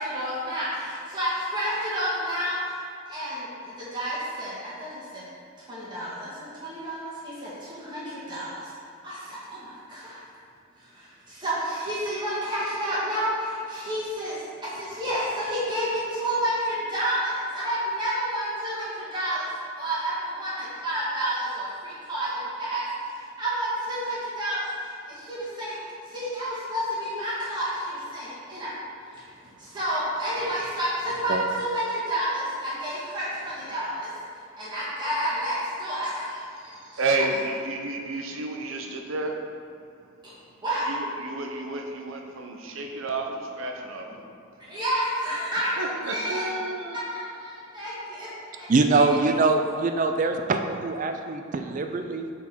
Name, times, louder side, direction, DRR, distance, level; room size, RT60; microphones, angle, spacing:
voice 1, 0.0-2.8 3.1-5.2 5.7-8.7 9.0-10.2 10.8-19.5 19.8-25.8 26.1-28.7 29.1-34.1 34.6-37.0 40.2-40.3 40.6-40.9 42.8-42.9 44.6-45.7 46.1-46.4 47.1-48.3 48.5-49.2, equal, 20° right, -9 dB, 1.6 m, -30 dB
voice 2, 36.6-39.4 40.8-44.1 45.8-47.0, right 2 dB, 70° right, 2 dB, 0.8 m, -31 dB
voice 3, 48.7-52.3, right 3 dB, 40° right, 5 dB, 0.4 m, -23 dB
8.4 x 3.8 x 4.4 m, 2.5 s
head